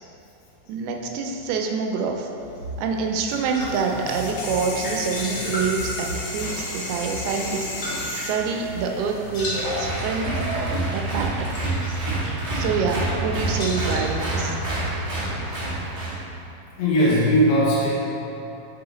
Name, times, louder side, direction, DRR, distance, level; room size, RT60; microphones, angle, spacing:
voice 1, 0.7-2.3 2.8-7.7 8.1-11.6 12.5-14.6, right 5 dB, 85° right, 2 dB, 2.5 m, -27 dB
sound 1, 2.4-15.2, equal, 50° left, 2.0 m, -35 dB
sound 2, 3.7-9.6, left 2 dB, 90° left, 3.2 m, -34 dB
Applause, 9.5-16.2, right 2 dB, 60° right, 1.0 m, -27 dB
voice 2, 16.8-17.9, equal, 70° left, -8 dB, 1.7 m, -18 dB
5.5 x 4.8 x 3.8 m, 2.9 s
omnidirectional pair, 4.4 m